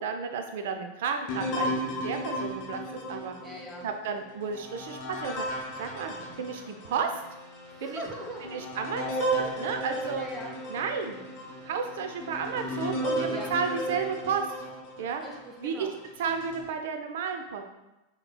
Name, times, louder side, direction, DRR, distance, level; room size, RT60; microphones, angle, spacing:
voice 1, 0.0-3.4 3.8-7.1 7.8-8.0 8.4-10.3 10.7-11.2 11.6-14.5 15.0-15.2 15.6-15.9 16.2-17.6, right 6 dB, 55° right, 6 dB, 0.4 m, -32 dB
sound 1, 1.3-7.0 7.6-7.7 8.2-15.4 16.0-16.6, equal, 40° left, 0.8 m, -35 dB
voice 2, 3.4-3.9 7.7-8.7 10.1-10.5 13.3-13.5 15.2-15.9, right 1 dB, 5° right, -3 dB, 0.8 m, -40 dB
Keyboard (musical), 5.7-14.7, left 2 dB, 20° left, 1.0 m, -50 dB
6.3 x 2.9 x 2.2 m, 0.96 s
figure-of-eight pair, 90°, 0 cm